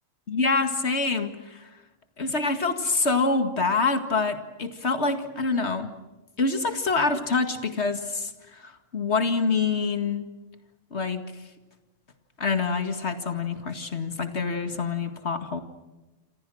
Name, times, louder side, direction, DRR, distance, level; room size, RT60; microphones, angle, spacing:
voice 1, 0.3-1.7 2.2-5.9 6.4-10.3 10.9-11.2 12.4-15.6, left 4 dB, 60° left, 8 dB, 2.3 m, -26 dB
28.0 x 27.0 x 6.4 m, 1.1 s
omnidirectional pair, 1.3 m